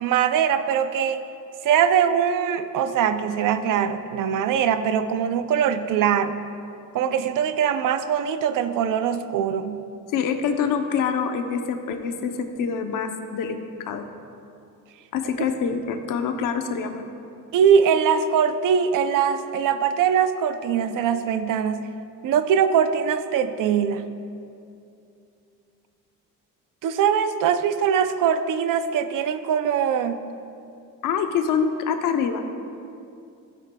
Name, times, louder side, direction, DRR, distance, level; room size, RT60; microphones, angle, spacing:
voice 1, 0.0-1.2 1.6-6.4 6.9-9.9 17.5-21.9 22.2-24.1 26.8-30.2, right 8 dB, 70° right, 11 dB, 0.5 m, -22 dB
voice 2, 10.1-14.1 15.1-17.1 31.0-32.5, left 6 dB, 75° left, 7 dB, 0.8 m, -25 dB
14.0 x 8.3 x 2.3 m, 2.6 s
cardioid pair, 140°, 33 cm